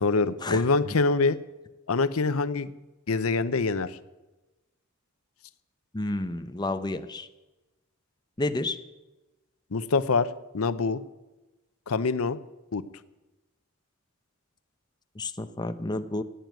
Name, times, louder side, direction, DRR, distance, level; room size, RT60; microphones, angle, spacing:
voice 1, 0.0-1.4 1.9-2.7 3.1-4.0 9.7-11.0 11.9-12.4 12.7-12.8, left 4 dB, 90° left, 14 dB, 0.7 m, -25 dB
voice 2, 5.9-7.3 8.4-8.8 15.2-16.2, left 2 dB, 20° left, 9 dB, 0.7 m, -30 dB
15.5 x 9.1 x 9.2 m, 1.1 s
head